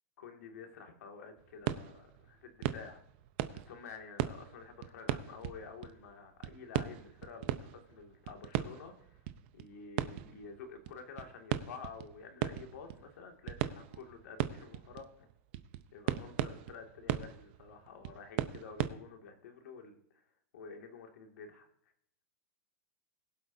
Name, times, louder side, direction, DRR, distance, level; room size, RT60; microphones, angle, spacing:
voice 1, 0.2-3.0 3.5-9.2 9.5-15.3 15.9-20.0 20.5-21.7, left 5 dB, 75° left, 3 dB, 2.2 m, -50 dB
sound 1, 1.4-6.1 6.4-18.9, right 12 dB, 40° right, 0.6 m, -38 dB
22.0 x 7.9 x 2.7 m, 0.69 s
supercardioid pair, 170°, 9 cm